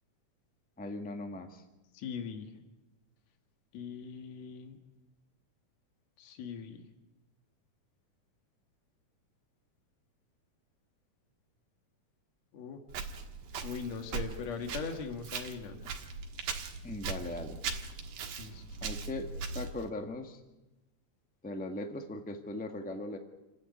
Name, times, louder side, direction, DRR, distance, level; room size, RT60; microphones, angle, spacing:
voice 1, 0.8-1.6 16.8-17.6 18.8-20.4 21.4-23.2, left 2 dB, 10° left, 5 dB, 0.4 m, -39 dB
voice 2, 1.9-2.5 3.7-4.8 6.2-6.8 12.5-12.8 13.6-15.8 18.4-18.6, left 6 dB, 60° left, 4 dB, 2.9 m, -40 dB
Walk footsteps, 12.9-19.9, right 5 dB, 85° right, 3.1 m, -40 dB
29.0 x 9.8 x 9.8 m, 1.0 s
omnidirectional pair, 3.6 m